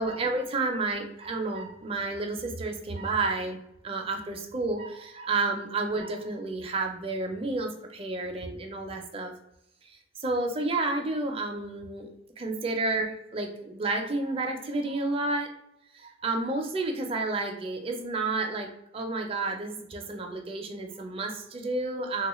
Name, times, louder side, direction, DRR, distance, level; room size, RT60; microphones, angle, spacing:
voice 1, 0.0-3.6 3.8-9.3 10.2-12.1 12.4-15.5 15.9-18.7 18.9-22.3, right 3 dB, 30° right, 3 dB, 0.4 m, -30 dB
3.3 x 2.3 x 3.0 m, 0.81 s
head